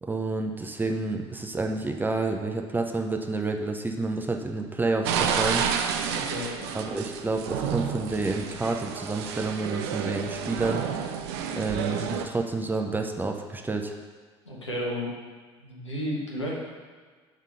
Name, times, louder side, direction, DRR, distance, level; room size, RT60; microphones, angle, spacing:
voice 1, 0.0-5.6 6.7-10.8 11.5-14.0, right 3 dB, 15° right, 3 dB, 0.6 m, -29 dB
sound 1, 5.1-12.3, right 7 dB, 60° right, 0.5 m, -30 dB
voice 2, 6.1-6.7 14.4-15.1 15.6-16.5, equal, 85° left, -4 dB, 1.1 m, -32 dB
5.1 x 3.7 x 5.6 m, 1.5 s
figure-of-eight pair, 60°, 15 cm